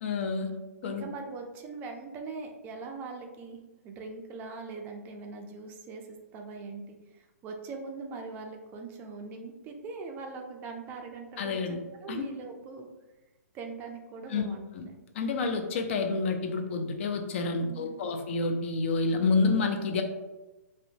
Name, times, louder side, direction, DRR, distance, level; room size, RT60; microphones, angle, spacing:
voice 1, 0.0-0.5 0.8-1.1 11.4-11.8 12.1-12.2 14.3-14.4 14.7-14.8 15.2-20.0, left 4 dB, 45° left, 5 dB, 0.4 m, -28 dB
voice 2, 0.8-3.6 3.8-12.9 13.5-15.0 17.6-18.1, right 4 dB, 20° right, 3 dB, 0.3 m, -41 dB
2.6 x 2.1 x 2.7 m, 1.1 s
figure-of-eight pair, 125°, 9 cm